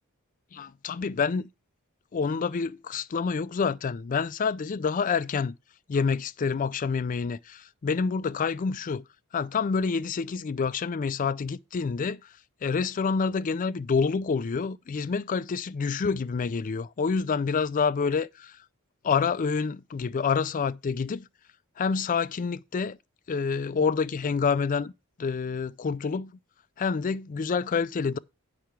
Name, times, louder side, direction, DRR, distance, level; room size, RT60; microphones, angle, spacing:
voice 1, 0.5-1.5 2.1-5.5 5.9-9.0 9.3-12.3 12.6-18.6 19.0-21.3 21.8-23.0 23.3-24.9 25.2-26.3 26.8-28.2, left 5 dB, 35° left, 0.3 m, -27 dB
8.5 x 5.7 x 4.5 m
head